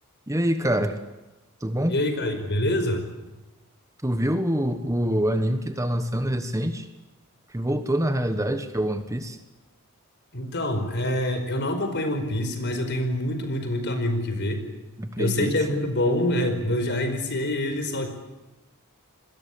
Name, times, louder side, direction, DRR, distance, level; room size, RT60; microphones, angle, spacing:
voice 1, 0.3-1.0 1.6-1.9 4.0-6.9 7.5-9.4 15.0-15.5, equal, 15° right, 9 dB, 1.4 m, -25 dB
voice 2, 1.8-3.0 10.3-14.6 15.2-18.1, left 1 dB, 55° left, 8 dB, 5.0 m, -26 dB
27.5 x 21.0 x 8.6 m, 1.0 s
head